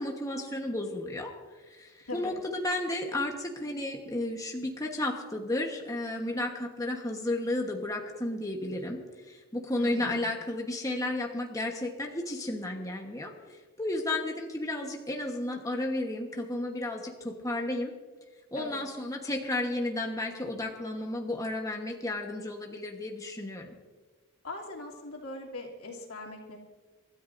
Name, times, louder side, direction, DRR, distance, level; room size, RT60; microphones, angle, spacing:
voice 1, 0.0-1.3 1.7-9.0 9.3-17.9 18.5-23.7, left 1 dB, 15° left, 1 dB, 1.2 m, -33 dB
voice 2, 9.7-10.3 18.5-18.8 24.4-26.6, left 2 dB, 90° left, -1 dB, 2.8 m, -41 dB
28.5 x 13.0 x 2.6 m, 1.3 s
head